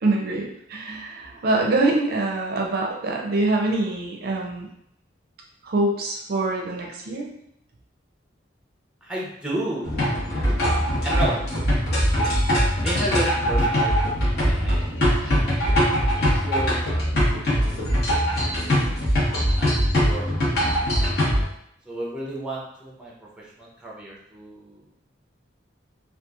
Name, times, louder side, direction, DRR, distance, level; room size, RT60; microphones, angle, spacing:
voice 1, 0.0-4.7 5.6-7.3, right 2 dB, 55° right, 0 dB, 0.4 m, -24 dB
voice 2, 9.0-10.0 10.3-11.4 12.8-14.9 15.2-15.6 16.2-17.8 18.3-18.8 19.6-20.3 20.5-20.8 21.9-24.8, right 1 dB, 5° right, -4 dB, 0.5 m, -33 dB
sound 1, 9.8-21.5, equal, 60° left, 1.0 m, -22 dB
2.9 x 2.3 x 2.3 m, 0.74 s
head